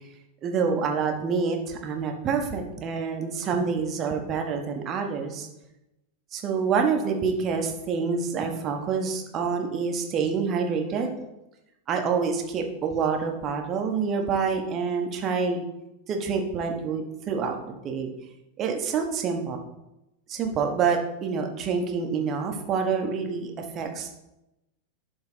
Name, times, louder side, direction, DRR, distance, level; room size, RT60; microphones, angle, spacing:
voice 1, 0.4-5.5 6.3-11.1 11.9-15.6 16.1-18.1 18.6-19.6 20.3-24.1, right 5 dB, 30° right, 3 dB, 1.2 m, -27 dB
11.5 x 3.9 x 4.1 m, 0.91 s
figure-of-eight pair, 90°, 0 cm